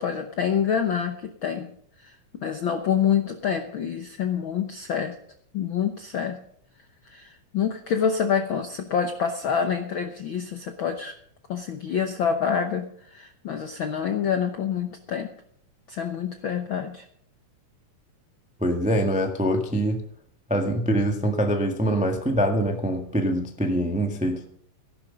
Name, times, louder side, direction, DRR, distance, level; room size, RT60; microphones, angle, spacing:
voice 1, 0.0-1.7 2.0-2.2 2.4-5.1 5.5-6.4 7.0-11.1 11.5-15.3 15.9-17.0, left 7 dB, 70° left, 6 dB, 1.1 m, -27 dB
voice 2, 18.6-20.0 20.5-24.5, equal, 10° right, 3 dB, 0.3 m, -24 dB
14.5 x 11.5 x 5.2 m, 0.65 s
omnidirectional pair, 3.6 m